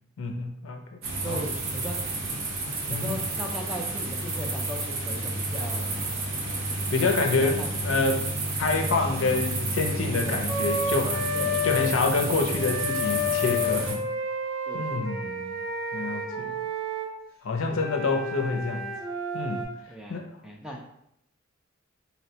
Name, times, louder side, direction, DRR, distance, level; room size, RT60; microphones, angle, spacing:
voice 1, 0.2-0.8 1.2-1.4 2.9-3.2 6.7-8.2 8.6-11.3 11.6-14.0 14.7-15.6 15.9-16.5 17.4-18.9 19.3-19.7 20.1-20.2, left 3 dB, 70° left, 3 dB, 0.5 m, -27 dB
sound 1, 1.0-13.9, right 2 dB, 75° right, 0.7 m, -31 dB
voice 2, 1.2-2.0 2.9-6.1 7.4-8.0 10.2-10.5 11.3-12.0 14.7-15.3 19.9-20.8, equal, 5° right, -1 dB, 0.3 m, -38 dB
Wind instrument woodwind instrument, 10.5-11.9 12.5-17.1 17.7-19.6, left 2 dB, 20° right, 1.1 m, -30 dB
4.0 x 2.1 x 2.7 m, 0.76 s
head